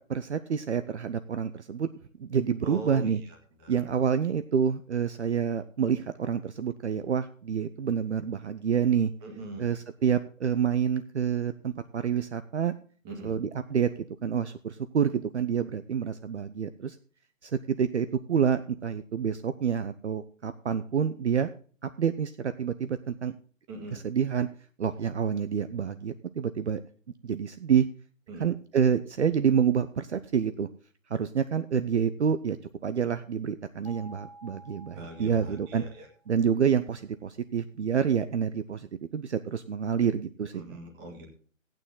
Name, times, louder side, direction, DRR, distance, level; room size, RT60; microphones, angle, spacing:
voice 1, 0.1-1.9 2.2-3.2 3.7-9.1 9.6-12.7 13.2-13.9 14.2-17.0 17.4-21.5 21.8-23.3 23.9-24.5 24.8-26.8 27.2-27.9 28.4-30.7 31.1-32.6 32.8-35.8 36.3-38.9 39.1-40.6, right 7 dB, 60° right, 11 dB, 0.7 m, -28 dB
voice 2, 2.6-3.8 9.2-9.7 13.0-13.3 23.7-24.0 28.3-28.5 34.9-36.1 40.5-41.3, right 2 dB, 15° right, 3 dB, 1.7 m, -41 dB
sound 1, 33.8-36.1, right 2 dB, 10° left, 2.2 m, -51 dB
14.0 x 9.0 x 3.8 m, 0.43 s
figure-of-eight pair, 150°, 40 cm